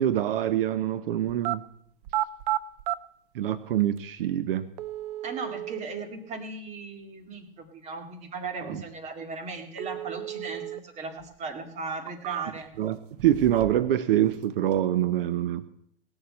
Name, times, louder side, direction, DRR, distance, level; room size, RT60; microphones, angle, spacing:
voice 1, 0.0-1.6 3.3-4.7 8.6-8.8 12.8-13.0 13.2-15.6, right 12 dB, 70° right, 14 dB, 0.8 m, -25 dB
sound 1, 1.3-1.6 2.0-3.0 4.0-4.1 4.8-5.8 9.8-10.8 11.2-11.3 11.9-12.8 13.2-13.9 14.2-14.8, right 14 dB, 45° right, 0.5 m, -33 dB
voice 2, 5.2-12.7, right 4 dB, 25° right, 6 dB, 2.0 m, -37 dB
18.0 x 7.1 x 7.7 m, 0.73 s
hypercardioid pair, 145°, 29 cm